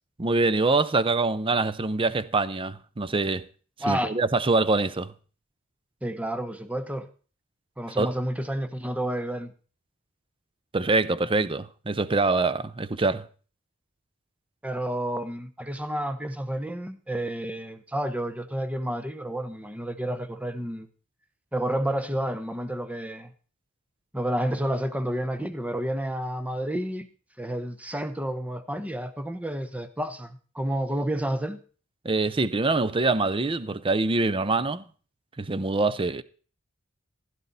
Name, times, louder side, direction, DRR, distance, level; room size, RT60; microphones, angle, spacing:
voice 1, 0.2-3.5 3.9-5.1 8.0-8.1 10.7-13.3 32.0-34.8 35.4-36.2, right 3 dB, 25° right, 0.6 m, -24 dB
voice 2, 3.8-4.1 6.0-7.1 7.8-9.5 14.6-20.9 21.5-23.3 24.1-27.1 27.4-31.6, right 1 dB, 5° right, 1.0 m, -30 dB
16.0 x 11.0 x 4.1 m
head